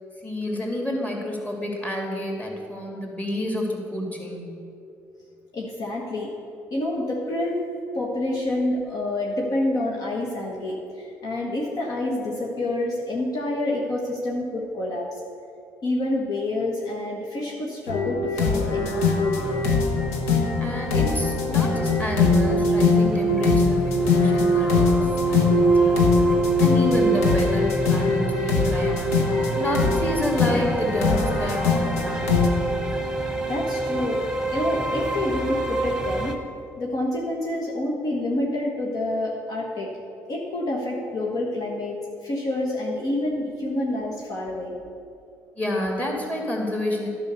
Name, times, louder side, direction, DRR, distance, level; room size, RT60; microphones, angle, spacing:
voice 1, 0.2-4.6 20.6-29.1 29.5-32.5 45.6-47.1, left 1 dB, 20° left, 0 dB, 2.7 m, -29 dB
voice 2, 5.5-6.3 6.7-7.6 7.9-15.2 15.8-19.4 24.0-24.1 33.5-34.2 34.5-36.4 36.8-39.9 40.3-44.8, left 1 dB, 55° left, -2 dB, 1.5 m, -28 dB
sound 1, 17.9-32.5, left 2 dB, 90° left, 0.9 m, -21 dB
sound 2, 19.4-36.3, right 1 dB, 5° right, 1.3 m, -30 dB
11.0 x 5.6 x 6.9 m, 2.5 s
hypercardioid pair, 55°, 8 cm